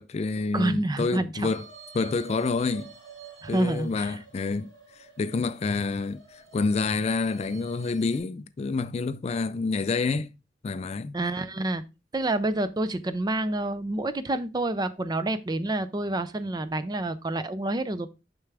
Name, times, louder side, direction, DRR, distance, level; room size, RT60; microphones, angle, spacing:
voice 1, 0.0-1.6 1.9-2.9 3.5-4.7 5.0-10.3 10.6-11.2, left 4 dB, 35° left, 0.3 m, -28 dB
voice 2, 0.5-1.5 3.4-4.2 11.1-11.8 12.1-18.1, right 2 dB, 20° right, 0.5 m, -28 dB
sound 1, 1.5-8.2, right 6 dB, 70° right, 4.2 m, -49 dB
6.6 x 6.0 x 3.3 m
head